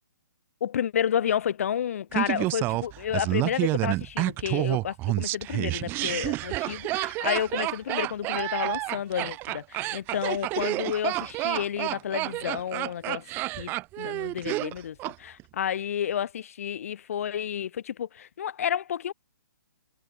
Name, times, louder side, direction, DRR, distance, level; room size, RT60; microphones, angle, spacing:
voice 1, 0.6-13.2 13.6-13.7 14.0-19.1, left 9 dB, 45° left, 1.7 m, -30 dB
Laughter, 2.1-15.1 15.4-15.5, right 19 dB, 20° right, 1.8 m, -29 dB
figure-of-eight pair, 130°, 11 cm